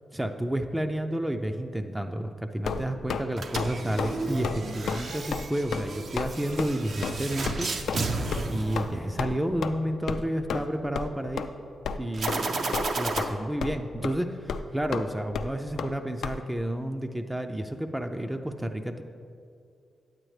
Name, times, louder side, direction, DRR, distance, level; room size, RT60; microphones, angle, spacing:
voice 1, 0.1-7.7 8.5-11.4 12.0-19.0, right 1 dB, 10° right, 5 dB, 0.4 m, -31 dB
sound 1, 2.6-3.2 3.6-3.7 4.0-4.2 4.4-4.6 4.9-5.0 5.3-5.5 5.7-5.9 6.2-6.3 6.6-6.7 7.0-7.2 7.5-7.6 7.9-8.0 8.3-8.4 8.8-8.9 9.2-9.3 9.6-9.7 10.1-10.2 10.5-10.7 11.0-11.1 11.4-11.5 11.9-12.0 12.3-12.4 12.7-13.3 13.6-13.8 14.0-14.1 14.5-14.6 14.9-15.0 15.3-15.5 15.8-15.9 16.2-16.4, left 6 dB, 80° left, 0.3 m, -31 dB
sound 2, 3.3-9.5 12.1-13.2, right 3 dB, 65° right, 0.6 m, -33 dB
9.0 x 8.5 x 3.2 m, 2.4 s
cardioid pair, 90°, 0 cm